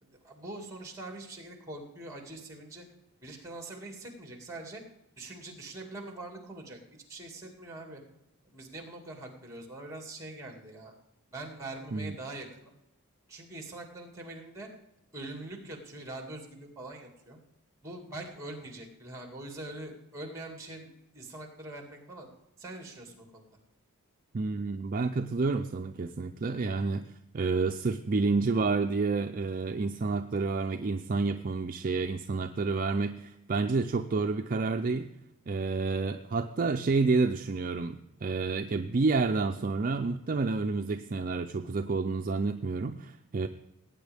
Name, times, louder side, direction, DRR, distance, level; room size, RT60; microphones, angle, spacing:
voice 1, 0.0-2.8 3.2-4.8 5.2-6.8 7.1-8.0 8.5-10.9 11.3-12.7 13.3-14.7 15.1-17.4 17.8-22.3 22.6-23.4, right 2 dB, 15° right, 2 dB, 2.2 m, -43 dB
voice 2, 24.3-35.1 35.5-43.5, right 3 dB, 40° right, 6 dB, 0.4 m, -29 dB
18.5 x 8.9 x 3.5 m, 0.87 s
head